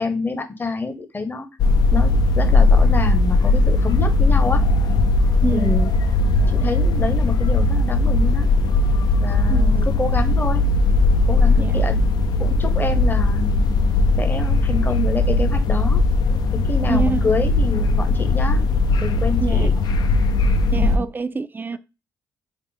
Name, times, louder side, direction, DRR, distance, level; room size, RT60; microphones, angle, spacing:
voice 1, 0.0-1.5 1.9-4.6 5.5-6.0 6.4-8.5 9.2-10.7 11.3-12.0 12.4-13.6 14.2-16.0 16.5-18.7 19.0-19.7 20.4-21.1, left 3 dB, 30° left, 0.8 m, -27 dB
sound 1, 1.6-21.0, left 2 dB, 70° left, 0.5 m, -18 dB
voice 2, 5.4-5.8 9.5-9.9 11.6-11.8 16.9-17.2 19.4-19.7 20.7-21.8, right 4 dB, 25° right, 0.4 m, -26 dB
3.6 x 2.0 x 4.0 m
cardioid pair, 75°, 7 cm